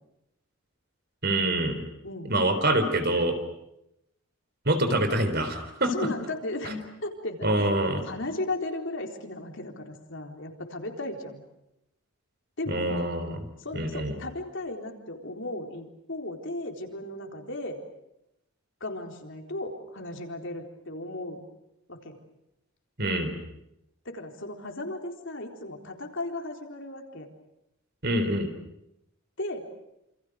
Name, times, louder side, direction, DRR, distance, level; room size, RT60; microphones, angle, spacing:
voice 1, 1.2-1.8 2.3-3.4 4.7-5.9 6.7-6.8 7.4-8.0 12.7-13.4 13.7-14.1 23.0-23.3 28.0-28.5, right 1 dB, 45° right, 8 dB, 3.9 m, -25 dB
voice 2, 5.9-7.7 8.1-11.4 12.6-13.0 13.6-17.8 18.8-21.4 21.9-22.2 24.0-27.3 29.4-29.7, left 2 dB, 55° left, 3 dB, 4.1 m, -36 dB
28.0 x 28.0 x 6.5 m, 0.84 s
head